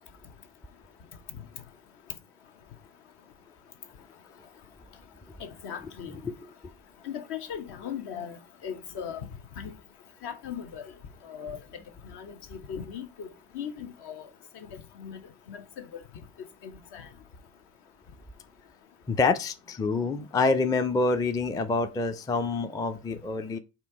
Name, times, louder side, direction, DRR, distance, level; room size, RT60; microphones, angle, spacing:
voice 1, 5.4-6.2 7.0-9.3 9.6-9.7 10.2-10.8 11.3-11.6 12.0-14.3 14.5-15.2 15.5-15.6 16.6-17.1, left 8 dB, 60° left, 0.9 m, -38 dB
voice 2, 19.1-23.6, left 3 dB, 10° left, 0.4 m, -27 dB
4.3 x 2.7 x 4.4 m
hypercardioid pair, 65°, 45 cm